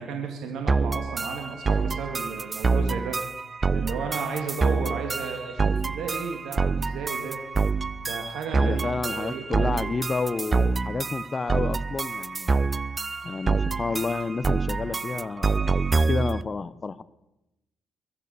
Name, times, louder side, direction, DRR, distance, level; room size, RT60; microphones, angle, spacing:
voice 1, 0.0-3.2 3.7-7.4 8.0-9.9, right 5 dB, 80° right, 3 dB, 2.1 m, -34 dB
sound 1, 0.7-16.4, right 4 dB, 30° right, 0.5 m, -26 dB
voice 2, 8.6-12.6 13.2-15.7 16.1-17.0, left 4 dB, 30° left, 15 dB, 0.6 m, -30 dB
22.0 x 8.7 x 6.9 m, 0.95 s
cardioid pair, 90°, 0 cm